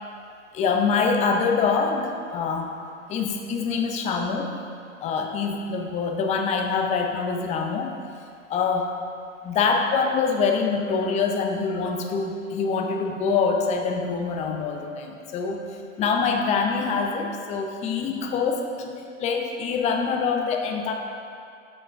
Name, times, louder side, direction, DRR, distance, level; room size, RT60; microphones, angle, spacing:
voice 1, 0.5-2.7 3.1-4.5 5.0-8.0 8.5-8.9 9.4-15.6 16.0-20.9, left 5 dB, 20° left, 3 dB, 0.5 m, -25 dB
7.5 x 5.9 x 3.4 m, 2.4 s
hypercardioid pair, 105°, 39 cm